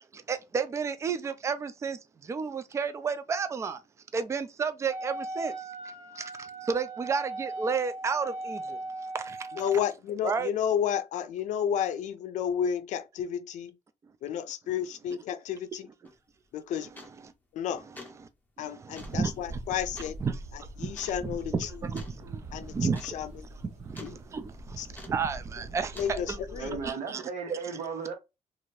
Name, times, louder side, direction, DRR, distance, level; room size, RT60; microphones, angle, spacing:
voice 1, 0.0-3.8 4.1-5.5 6.1-8.8 9.1-9.5 10.2-10.5 18.6-19.6 20.2-20.4 20.8-23.2 23.8-26.4 26.8-27.2 27.5-27.6, right 5 dB, 25° right, 0.3 m, -32 dB
Wind instrument woodwind instrument, 4.9-9.9, right 2 dB, 40° right, 0.8 m, -38 dB
voice 2, 9.5-13.8 14.2-15.9 16.5-16.9 17.5-17.8 18.6-20.2 20.5-21.9 22.5-23.3 24.0-24.2 24.8-24.9 26.0-26.8, left 8 dB, 80° left, 0.5 m, -31 dB
sound 1, 16.0-16.2 16.9-17.3 17.8-18.2 18.9-19.2 19.9-20.2 20.9-21.2 21.9-22.2 22.5-22.6 22.9-23.2 23.4-24.2 24.9-25.3 25.9-26.2, left 2 dB, 15° left, 0.7 m, -47 dB
sound 2, 19.0-26.9, right 1 dB, 65° right, 1.0 m, -44 dB
voice 3, 26.6-28.1, right 5 dB, 90° right, 1.0 m, -35 dB
2.8 x 2.5 x 3.0 m
cardioid pair, 145°, 12 cm